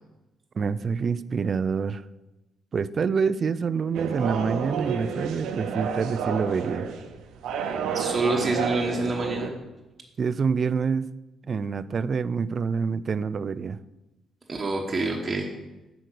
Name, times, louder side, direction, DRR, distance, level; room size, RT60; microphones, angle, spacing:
voice 1, 0.6-2.0 2.7-6.9 10.2-11.1 11.5-13.8, right 5 dB, 45° right, 16 dB, 0.3 m, -26 dB
sound 1, 3.9-9.5, right 6 dB, 85° right, 0.8 m, -30 dB
voice 2, 7.9-9.6 14.5-15.5, right 2 dB, 30° right, -1 dB, 1.2 m, -27 dB
7.6 x 5.2 x 6.5 m, 1.1 s
cardioid pair, 90°, 0 cm